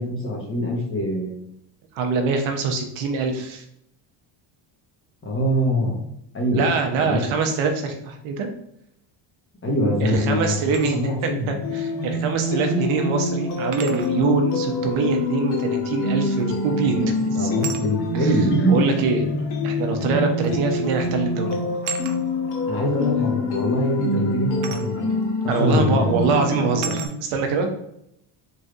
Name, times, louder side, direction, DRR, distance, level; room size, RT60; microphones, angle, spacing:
voice 1, 0.0-1.4 5.2-6.0 6.3-6.6 7.0-7.2 9.6-11.5 12.6-12.8 16.8-18.7 19.3-19.4 22.7-25.2 25.4-26.2, equal, 25° left, -2 dB, 1.2 m, -24 dB
voice 2, 1.9-3.6 6.5-8.5 10.0-11.0 11.5-17.5 18.1-18.4 18.7-19.3 19.6-21.6 25.5-27.7, right 4 dB, 75° right, 4 dB, 0.9 m, -24 dB
sound 1, 10.5-10.9 12.5-12.6 13.7-14.2 16.4-16.7 17.6-17.9 19.1-19.2 20.4-20.6 20.9-21.2 21.8-22.2 24.6-24.9 25.7-25.8 26.8-27.2, right 7 dB, 40° right, 0.4 m, -34 dB
sound 2, 11.6-27.1, left 2 dB, 55° left, 1.1 m, -26 dB
4.0 x 3.3 x 2.5 m, 0.76 s
cardioid pair, 120°, 50 cm